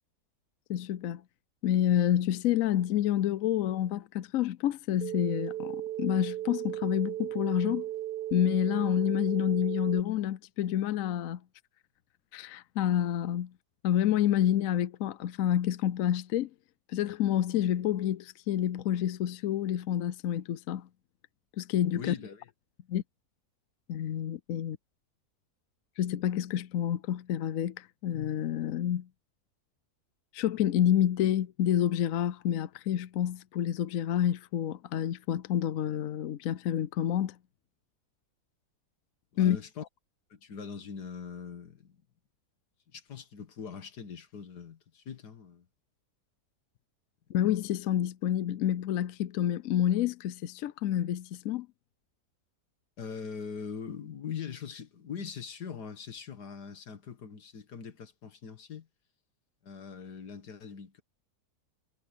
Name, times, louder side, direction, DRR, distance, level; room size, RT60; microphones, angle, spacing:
voice 1, 0.7-1.2 1.6-7.8 8.3-11.4 12.3-13.5 13.8-16.5 16.9-20.9 21.6-22.1 22.9-23.0 23.9-24.8 26.0-29.1 30.3-37.4 39.4-39.6 47.3-51.7, left 11 dB, 70° left, 0.9 m, -28 dB
sound 1, 5.0-10.0, right 13 dB, 75° right, 1.3 m, -36 dB
voice 2, 21.9-22.5 39.3-39.8 40.3-42.0 42.9-45.7 53.0-58.9 59.6-61.0, left 6 dB, 85° left, 2.2 m, -42 dB
omnidirectional pair, 1.7 m